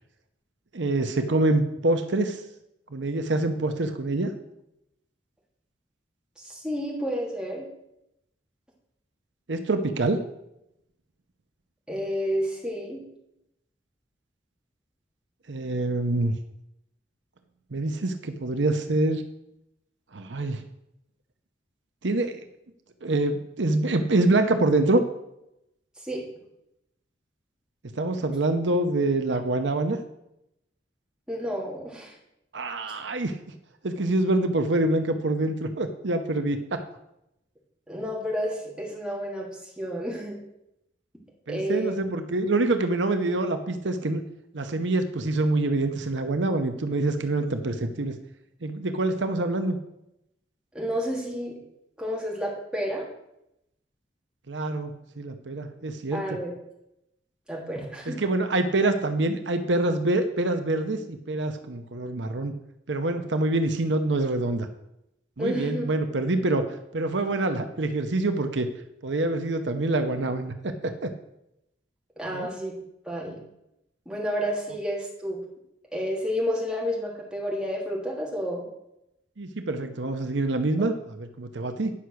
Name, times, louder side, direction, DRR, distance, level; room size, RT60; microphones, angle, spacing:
voice 1, 0.7-2.4 2.9-4.3 9.5-10.2 15.5-16.3 17.7-19.2 20.1-20.6 22.0-22.4 23.0-25.0 28.0-30.0 32.5-33.3 33.8-36.8 41.5-44.2 44.5-48.1 48.6-49.8 54.5-56.2 58.1-62.5 62.9-64.7 65.4-66.7 66.9-68.7 69.0-71.1 72.3-72.5 79.4-81.9, right 2 dB, 80° right, 7 dB, 0.9 m, -25 dB
voice 2, 6.4-7.7 11.9-13.0 26.0-26.2 31.3-32.2 32.9-33.0 37.9-40.4 41.5-41.9 50.7-51.6 52.0-53.0 56.1-56.6 57.5-58.2 65.4-66.0 72.2-72.8 73.0-73.4 74.1-75.4 75.9-78.7, equal, 5° right, -3 dB, 2.8 m, -30 dB
10.0 x 5.8 x 6.3 m, 0.83 s
head